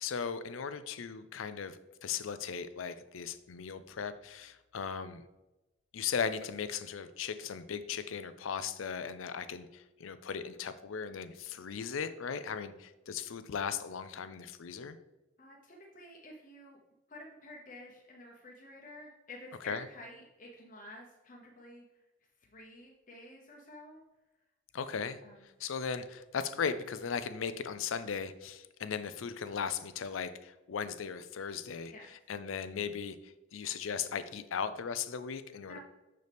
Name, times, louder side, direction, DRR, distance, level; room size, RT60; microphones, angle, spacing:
voice 1, 0.0-1.8 2.0-5.2 5.9-15.0 19.7-19.8 24.7-25.2 25.6-31.9 32.3-35.8, left 6 dB, 85° left, 13 dB, 0.5 m, -37 dB
voice 2, 15.4-16.8 17.1-21.8 22.5-24.0 25.2-25.5 31.9-32.1 35.7-35.8, left 1 dB, 40° left, -1 dB, 0.9 m, -50 dB
6.6 x 6.5 x 3.5 m, 1.0 s
head